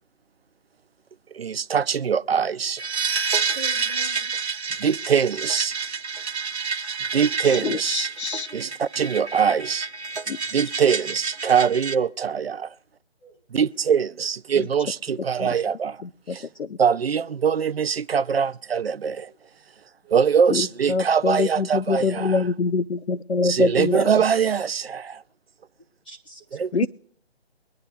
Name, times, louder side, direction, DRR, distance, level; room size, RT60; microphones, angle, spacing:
voice 1, 1.3-2.8 4.8-5.8 7.1-8.1 8.5-9.9 10.5-12.7 13.5-15.9 16.3-16.5 16.8-19.2 20.1-22.4 23.4-25.2 26.6-26.9, right 7 dB, 65° right, 0.5 m, -23 dB
sound 1, 2.8-12.0, right 5 dB, 85° right, 1.2 m, -29 dB
voice 2, 3.5-4.8 8.3-8.8 10.3-10.5 10.9-11.1 13.2-13.8 14.2-14.3 19.0-19.3 20.0-20.2 26.0-26.9, right 3 dB, 10° left, 0.9 m, -46 dB
voice 3, 7.6-8.5 15.4-15.5 16.0-16.7 20.5-24.0 26.7-26.9, left 4 dB, 75° left, 0.6 m, -25 dB
23.0 x 10.0 x 2.3 m
figure-of-eight pair, 165°, 33 cm